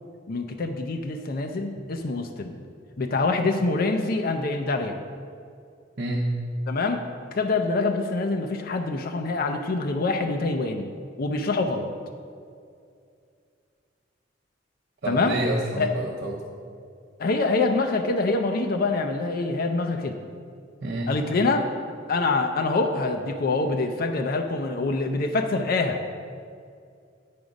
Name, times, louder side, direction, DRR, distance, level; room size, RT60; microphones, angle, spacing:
voice 1, 0.3-2.6 3.0-5.0 6.7-7.0 7.3-10.9 11.2-11.9 15.0-15.4 15.8-15.9 17.2-20.2 21.1-21.7 22.1-26.0, left 3 dB, 55° left, 5 dB, 0.5 m, -25 dB
voice 2, 15.0-16.4 20.8-21.1, right 1 dB, 60° right, -2 dB, 0.8 m, -28 dB
9.5 x 4.9 x 5.2 m, 2.3 s
head